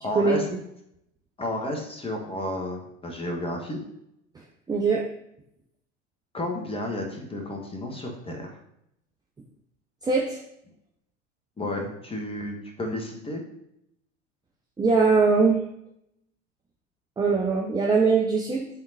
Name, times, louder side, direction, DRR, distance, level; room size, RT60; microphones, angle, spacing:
voice 1, 0.0-0.4 1.4-3.8 6.3-8.5 11.6-13.4, left 1 dB, 15° left, 1 dB, 1.4 m, -32 dB
voice 2, 4.7-5.0 10.0-10.4 14.8-15.6 17.2-18.7, right 4 dB, 10° right, -1 dB, 0.6 m, -21 dB
10.5 x 3.6 x 2.7 m, 0.78 s
figure-of-eight pair, 75°, 37 cm